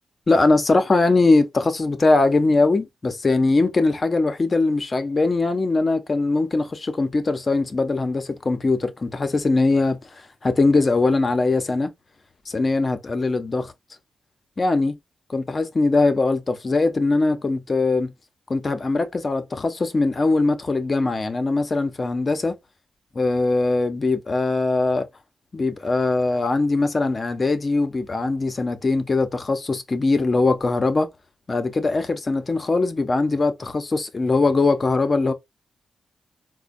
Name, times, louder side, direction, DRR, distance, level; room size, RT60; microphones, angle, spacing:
voice 1, 0.3-11.9 12.5-13.7 14.6-15.0 15.3-18.1 18.5-22.6 23.1-25.1 25.5-31.1 31.5-35.3, left 3 dB, 40° left, 0.7 m, -21 dB
4.2 x 2.2 x 2.5 m
cardioid pair, 55°, 0 cm